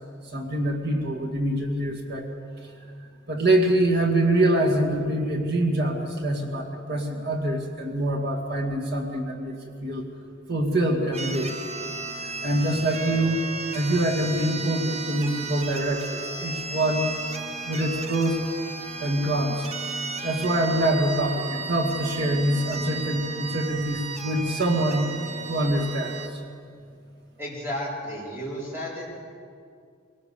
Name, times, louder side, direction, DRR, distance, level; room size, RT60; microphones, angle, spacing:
voice 1, 0.3-2.2 3.3-9.6 9.8-10.0 10.5-11.6 12.4-13.4 13.7-17.1 17.6-18.4 19.0-19.7 20.2-25.1 25.5-26.4, right 1 dB, 55° right, 0 dB, 2.2 m, -25 dB
sound 1, 11.1-26.3, right 3 dB, 35° right, 1.1 m, -35 dB
voice 2, 27.4-29.3, equal, 10° right, -5 dB, 4.8 m, -33 dB
23.0 x 18.0 x 6.9 m, 2.3 s
head